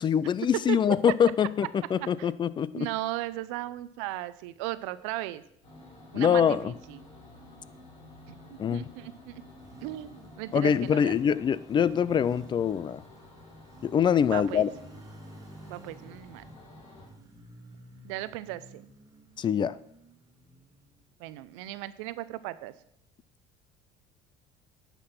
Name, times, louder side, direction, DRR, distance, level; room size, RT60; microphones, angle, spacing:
voice 1, 0.0-2.9 6.1-6.7 8.6-8.8 10.5-13.0 13.8-14.7 19.4-19.7, left 8 dB, 30° left, 18 dB, 0.4 m, -24 dB
voice 2, 0.7-1.1 2.0-2.3 2.7-5.4 6.1-7.0 8.5-9.4 9.8-11.2 14.2-14.7 15.7-16.4 18.0-18.8 21.2-22.7, right 16 dB, 90° right, 16 dB, 0.6 m, -36 dB
sound 1, 5.6-17.1, left 2 dB, 45° left, 4.5 m, -51 dB
Motorcycle, 8.7-21.4, right 2 dB, 25° right, 1.6 m, -52 dB
9.9 x 6.0 x 5.8 m, 0.73 s
supercardioid pair, 105°, 16 cm